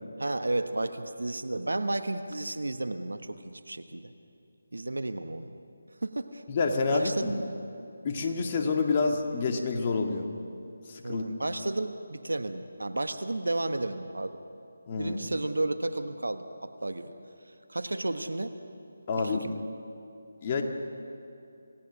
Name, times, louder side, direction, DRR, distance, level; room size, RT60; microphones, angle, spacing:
voice 1, 0.2-4.1 4.7-5.5 6.0-6.4 6.9-7.4 11.0-14.4 15.0-17.1 17.7-18.5 19.2-19.6, right 2 dB, 80° right, 9 dB, 1.4 m, -32 dB
voice 2, 6.5-7.3 8.0-10.3 10.9-11.3 14.9-15.2 19.1-19.5 20.4-20.6, left 4 dB, 35° left, 3 dB, 2.1 m, -28 dB
27.5 x 18.5 x 6.4 m, 2.7 s
figure-of-eight pair, 155°, 0 cm